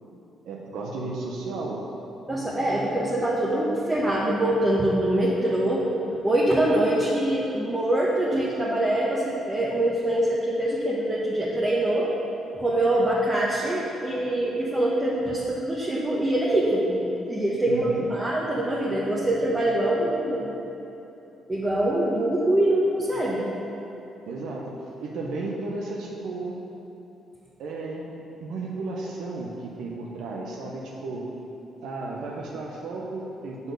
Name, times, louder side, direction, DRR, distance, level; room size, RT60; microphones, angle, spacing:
voice 1, 0.5-1.8 17.7-18.1 24.3-26.5 27.6-28.1 28.4-31.3 31.8-33.7, right 3 dB, 85° right, -2 dB, 0.8 m, -34 dB
voice 2, 2.3-5.9 6.2-12.1 12.5-20.5 21.5-23.5, right 1 dB, 20° right, -6 dB, 1.0 m, -24 dB
7.0 x 4.1 x 6.6 m, 2.9 s
cardioid pair, 90°, 0 cm